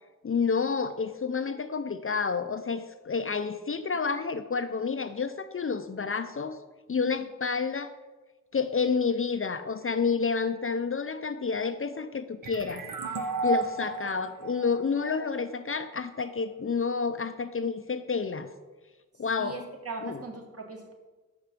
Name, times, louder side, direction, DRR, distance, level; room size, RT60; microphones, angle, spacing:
voice 1, 0.2-6.6 6.9-7.9 8.5-12.8 13.4-18.5 19.2-19.6 20.0-20.2, left 5 dB, 45° left, 10 dB, 0.4 m, -29 dB
sound 1, 12.4-15.9, right 3 dB, 80° right, 0.7 m, -33 dB
voice 2, 19.4-20.9, right 3 dB, 50° right, 1 dB, 1.3 m, -39 dB
5.7 x 5.1 x 5.9 m, 1.2 s
cardioid pair, 45°, 32 cm